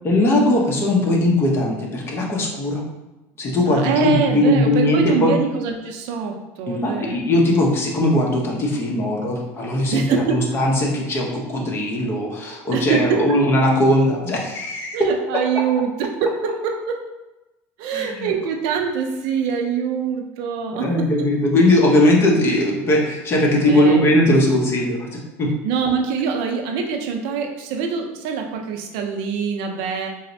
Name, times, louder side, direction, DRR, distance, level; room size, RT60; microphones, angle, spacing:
voice 1, 0.0-2.8 3.4-5.3 6.7-15.0 17.9-18.3 20.7-25.5, left 1 dB, 30° left, -1 dB, 0.7 m, -19 dB
voice 2, 3.6-7.2 9.9-10.4 12.7-13.4 14.9-17.0 17.8-21.3 23.6-24.1 25.6-30.1, right 6 dB, 70° right, 3 dB, 0.4 m, -24 dB
4.1 x 2.0 x 2.6 m, 1.0 s
supercardioid pair, 120°, 8 cm